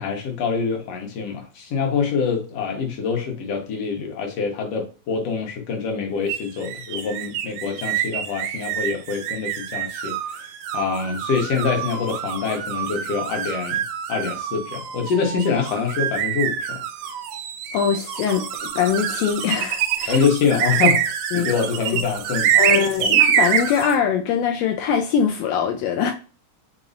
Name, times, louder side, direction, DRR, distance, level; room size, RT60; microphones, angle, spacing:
voice 1, 0.0-10.4 10.7-16.8 20.1-21.1 21.3-23.2, left 5 dB, 65° left, 1.8 m, -25 dB
sound 1, 6.3-24.0, right 9 dB, 80° right, 2.0 m, -25 dB
voice 2, 17.7-20.2 21.3-21.5 22.6-26.1, left 7 dB, 80° left, 1.5 m, -22 dB
5.0 x 3.0 x 2.5 m
omnidirectional pair, 3.5 m